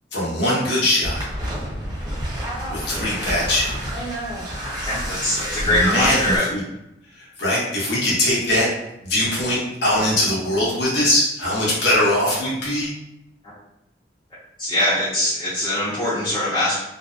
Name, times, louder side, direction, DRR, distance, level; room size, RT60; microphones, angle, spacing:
voice 1, 0.1-1.3 2.7-4.0 5.6-6.6 7.1-8.7 9.0-12.9, left 1 dB, 75° left, -6 dB, 0.9 m, -21 dB
sound 1, 1.0-6.4, equal, 25° right, 1.0 m, -29 dB
voice 2, 4.8-6.4 14.6-16.8, left 1 dB, 30° left, -11 dB, 0.7 m, -22 dB
2.6 x 2.0 x 2.4 m, 0.86 s
head